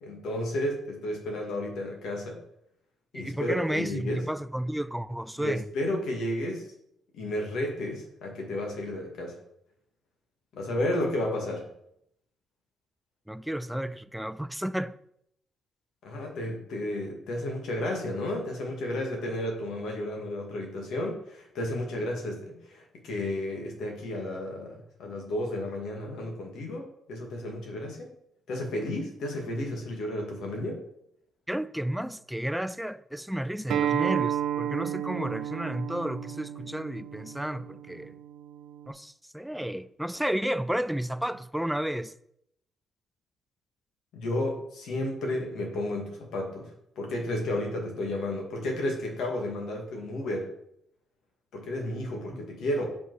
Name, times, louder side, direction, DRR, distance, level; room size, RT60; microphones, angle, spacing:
voice 1, 0.0-2.4 3.1-4.2 5.4-6.7 7.1-9.4 10.5-11.6 16.0-28.1 28.5-30.8 44.1-46.7 47.0-50.5 51.5-52.8, left 1 dB, 75° left, 2.2 m, -32 dB
voice 2, 3.1-5.6 13.3-15.0 31.5-38.2 38.9-42.1, right 1 dB, 5° right, 0.4 m, -32 dB
Acoustic guitar, 33.7-38.9, right 10 dB, 75° right, 0.6 m, -32 dB
7.1 x 5.4 x 4.8 m
cardioid pair, 90°, 0 cm